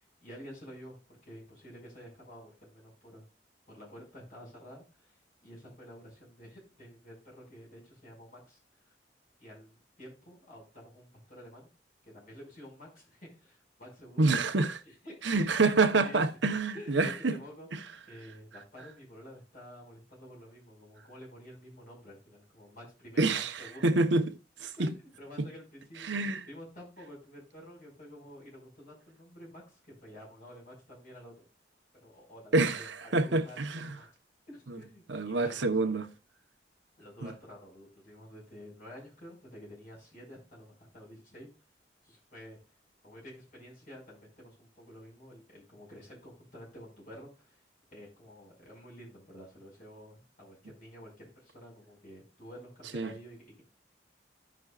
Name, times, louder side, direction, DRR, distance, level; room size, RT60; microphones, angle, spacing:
voice 1, 0.0-3.3 3.7-5.2 5.4-8.6 9.4-11.7 12.0-14.4 14.8-15.6 16.0-16.2 16.7-23.9 24.8-26.1 26.5-31.4 32.0-34.1 34.5-36.0 37.0-41.5 42.0-42.6 43.0-47.6 47.9-53.6, equal, 50° left, 5.4 m, -50 dB
voice 2, 14.2-14.8 15.2-17.4 17.7-17.8 23.2-24.9 26.0-26.5 32.5-33.9 34.7-34.8 35.1-36.1 37.2-37.3 52.9-53.1, right 3 dB, 80° right, 1.0 m, -27 dB
16.0 x 6.1 x 2.4 m
head